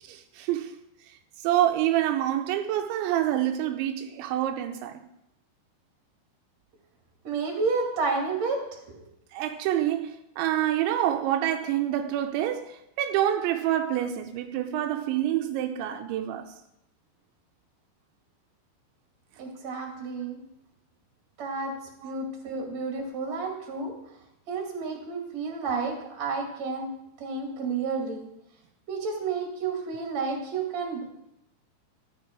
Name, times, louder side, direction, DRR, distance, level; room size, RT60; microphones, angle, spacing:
voice 1, 0.1-0.8 1.4-5.0 9.3-16.5 22.0-22.1, right 12 dB, 85° right, 3.1 m, -27 dB
voice 2, 7.2-8.6 8.9-9.0 19.4-20.4 21.4-21.7 22.0-23.9 24.5-26.9 27.2-28.3 28.9-31.0, right 4 dB, 40° right, 3.2 m, -30 dB
13.5 x 9.8 x 4.7 m
omnidirectional pair, 5.2 m